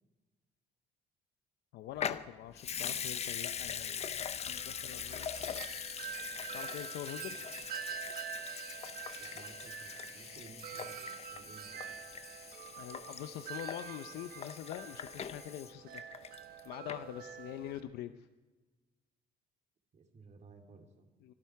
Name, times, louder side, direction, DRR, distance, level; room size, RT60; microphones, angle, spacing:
voice 1, 1.7-4.1 4.4-5.8 6.5-7.4 12.8-16.0 16.6-18.3 21.2-21.3, left 12 dB, 80° left, 10 dB, 0.7 m, -45 dB
Water tap faucet / Sink (filling or washing) / Liquid, 2.0-16.6 16.9-17.0, left 8 dB, 40° left, 0.7 m, -42 dB
Wind chime, 4.4-17.8, right 8 dB, 65° right, 1.2 m, -46 dB
voice 2, 9.2-12.0 19.9-21.1, right 3 dB, 45° right, 3 dB, 2.8 m, -56 dB
24.5 x 12.5 x 4.7 m, 1.3 s
cardioid pair, 110°, 17 cm